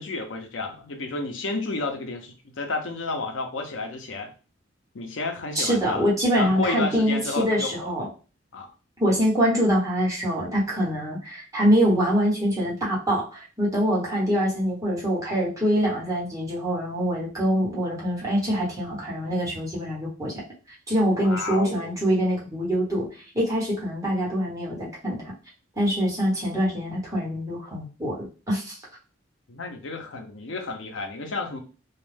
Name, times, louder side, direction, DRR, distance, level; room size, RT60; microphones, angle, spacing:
voice 1, 0.0-4.3 4.9-6.1 6.4-7.9 8.5-8.7 21.2-22.0 29.5-31.6, left 3 dB, 75° left, 4 dB, 0.6 m, -31 dB
voice 2, 5.5-8.1 9.0-20.3 20.9-23.1 23.3-25.2 25.8-28.8, equal, 15° right, -6 dB, 1.2 m, -24 dB
2.4 x 2.2 x 3.3 m, 0.34 s
head